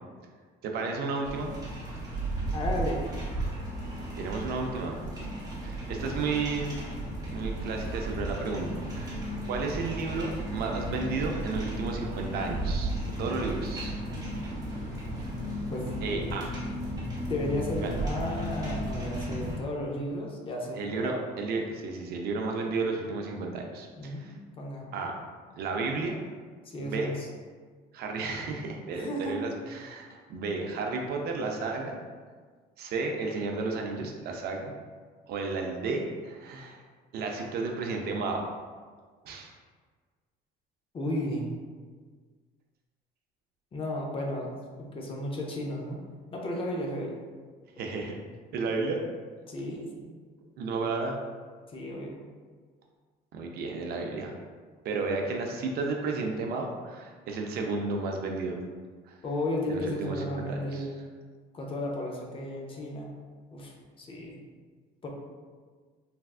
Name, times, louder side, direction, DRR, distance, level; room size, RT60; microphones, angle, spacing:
voice 1, 0.6-1.5 4.2-5.0 5.6-6.8 7.3-14.0 16.0-16.5 17.8-17.9 20.8-24.3 24.9-25.2 25.6-26.2 26.8-27.1 27.9-32.0 32.8-34.7 35.3-36.8 37.1-38.4 39.2-39.5 47.8-48.1 48.5-49.0 50.6-51.2 53.3-54.3 54.8-58.6 59.1-59.2 59.7-60.8, right 3 dB, 60° right, 2 dB, 0.4 m, -32 dB
sound 1, 1.2-19.6, right 1 dB, 20° right, 0.8 m, -34 dB
voice 2, 2.5-3.1 15.7-16.2 17.3-21.2 24.0-24.9 26.6-27.3 28.9-29.5 40.9-41.5 43.7-46.0 46.3-47.2 49.5-50.2 51.7-52.2 59.2-60.9 61.5-63.1 63.5-64.4 65.0-65.1, left 1 dB, 30° left, -1 dB, 0.5 m, -34 dB
3.3 x 2.3 x 2.3 m, 1.6 s
cardioid pair, 125°, 18 cm